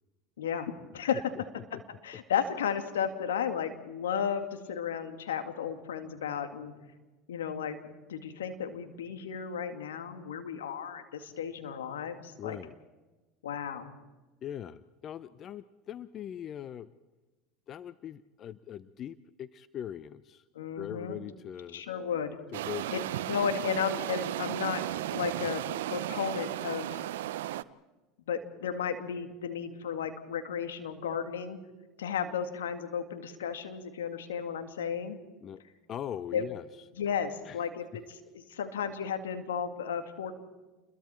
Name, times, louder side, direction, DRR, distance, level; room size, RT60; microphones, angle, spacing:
voice 1, 0.4-1.2 1.7-6.7 7.3-7.8 8.1-12.6 13.4-13.9 20.6-21.2 21.7-22.4 22.9-23.0 23.3-24.8 25.1-27.0 28.3-31.6 32.0-35.2 36.3-36.5 37.0-40.3, left 7 dB, 85° left, 8 dB, 2.2 m, -34 dB
voice 2, 12.4-12.7 14.4-16.9 17.7-20.4 20.7-21.8 22.5-23.1 35.4-35.6 35.9-36.7 37.5-37.6, left 10 dB, 45° left, 16 dB, 0.7 m, -41 dB
sound 1, 22.5-27.6, right 13 dB, 75° right, 0.6 m, -35 dB
29.0 x 22.0 x 4.5 m, 1.2 s
hypercardioid pair, 85°, 0 cm